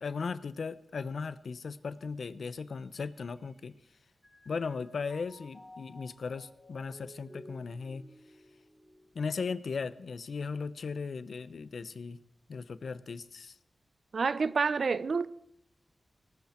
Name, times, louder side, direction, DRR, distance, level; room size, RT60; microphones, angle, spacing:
voice 1, 0.0-3.7 4.5-8.0 9.1-12.2 12.5-13.6, left 5 dB, 70° left, 0.7 m, -37 dB
Mallet percussion, 2.9-3.9 4.2-9.6, left 1 dB, 15° left, 5.9 m, -55 dB
voice 2, 14.1-15.3, right 5 dB, 65° right, 0.6 m, -28 dB
19.0 x 13.5 x 4.4 m
wide cardioid pair, 95°, 0 cm